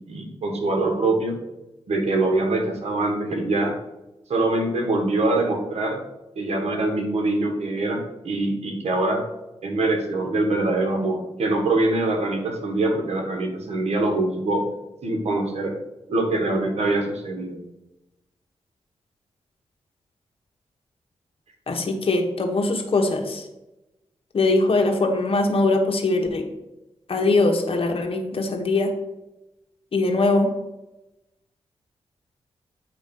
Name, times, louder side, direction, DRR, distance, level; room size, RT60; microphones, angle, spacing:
voice 1, 0.1-1.4 1.9-3.7 4.3-6.0 6.4-9.2 9.6-14.6 15.0-15.7 16.1-17.6, right 2 dB, 80° right, 3 dB, 1.3 m, -24 dB
voice 2, 21.7-23.4 24.3-26.5 27.1-28.9 29.9-30.5, left 2 dB, 60° left, 3 dB, 1.1 m, -21 dB
8.6 x 3.0 x 5.2 m, 0.97 s
cardioid pair, 70°, 11 cm